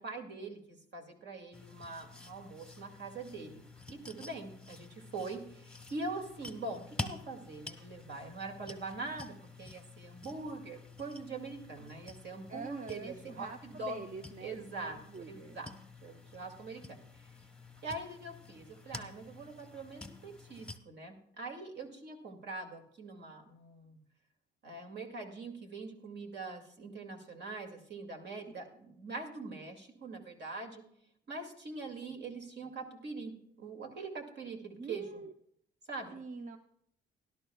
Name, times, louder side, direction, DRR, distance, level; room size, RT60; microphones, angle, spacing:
voice 1, 0.0-14.0 14.4-15.7 16.0-17.0 17.8-24.0 24.6-30.8 31.3-33.3 33.6-35.2 35.9-36.2, right 3 dB, 60° right, 3 dB, 2.3 m, -43 dB
sound 1, 1.5-20.8, left 3 dB, 5° left, 1.0 m, -49 dB
voice 2, 12.5-15.6 34.8-35.3 36.1-36.6, right 4 dB, 40° right, 8 dB, 0.7 m, -45 dB
18.0 x 12.0 x 2.3 m, 0.71 s
cardioid pair, 90°, 20 cm